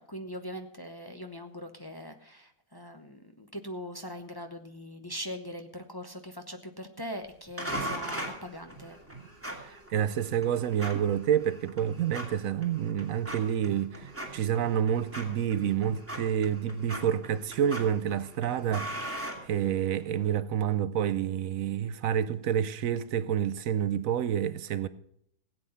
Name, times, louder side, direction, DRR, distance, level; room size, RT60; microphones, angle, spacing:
voice 1, 0.0-9.0, equal, 20° left, 0.9 m, -41 dB
sound 1, 7.6-20.1, right 1 dB, 10° right, 2.5 m, -40 dB
voice 2, 9.6-24.9, right 9 dB, 75° right, 1.1 m, -28 dB
16.5 x 8.4 x 5.6 m
omnidirectional pair, 1.5 m